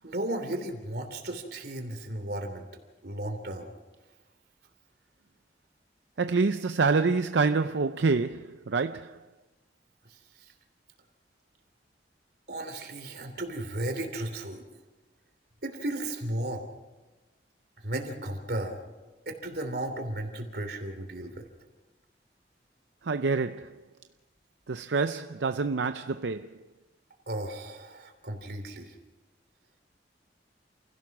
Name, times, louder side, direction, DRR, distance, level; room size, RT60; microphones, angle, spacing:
voice 1, 0.0-2.6 3.0-3.7 12.5-14.6 15.6-16.7 17.8-18.8 19.2-21.4 27.3-28.9, right 1 dB, 60° right, 3.2 m, -34 dB
voice 2, 6.2-9.2 23.0-23.7 24.7-26.5, right 4 dB, 80° right, 0.6 m, -27 dB
29.0 x 16.5 x 6.1 m
head